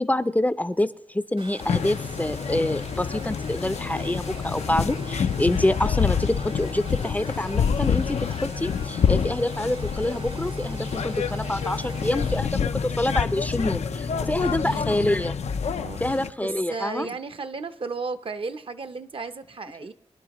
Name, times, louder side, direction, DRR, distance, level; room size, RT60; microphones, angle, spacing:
voice 1, 0.0-15.3 16.0-17.1, left 1 dB, 15° left, 14 dB, 0.4 m, -26 dB
Domestic sounds home sounds, 1.4-12.4, right 3 dB, 85° right, 3.8 m, -44 dB
sound 1, 1.6-16.3, left 7 dB, 85° left, 0.5 m, -28 dB
sound 2, 1.8-16.1, left 4 dB, 60° left, 0.8 m, -35 dB
voice 2, 14.2-14.8 15.7-19.9, right 4 dB, 55° right, 11 dB, 0.7 m, -35 dB
25.0 x 11.0 x 3.0 m, 0.80 s
wide cardioid pair, 70°, 11 cm